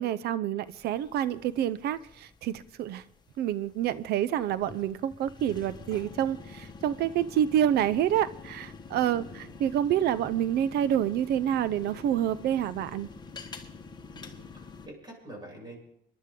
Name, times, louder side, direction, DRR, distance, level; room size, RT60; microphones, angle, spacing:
voice 1, 0.0-3.0 3.4-13.1, right 10 dB, 70° right, 17 dB, 0.6 m, -28 dB
sound 1, 0.7-14.9, left 4 dB, 25° left, 1.4 m, -47 dB
voice 2, 9.1-9.5 14.1-15.8, right 1 dB, 25° right, 0 dB, 6.8 m, -46 dB
25.5 x 11.5 x 3.7 m, 0.74 s
cardioid pair, 110°, 17 cm